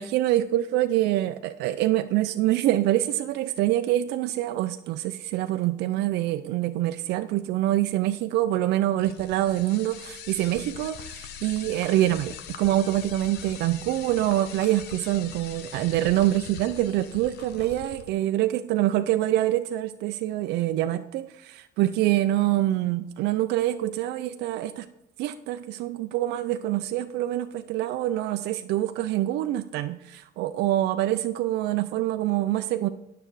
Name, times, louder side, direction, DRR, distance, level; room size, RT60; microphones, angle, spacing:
voice 1, 0.0-24.9 25.2-32.9, right 14 dB, 80° right, 8 dB, 0.4 m, -25 dB
sound 1, 9.0-18.1, left 8 dB, 75° left, 0.8 m, -42 dB
9.9 x 6.7 x 4.7 m, 0.82 s
cardioid pair, 110°, 17 cm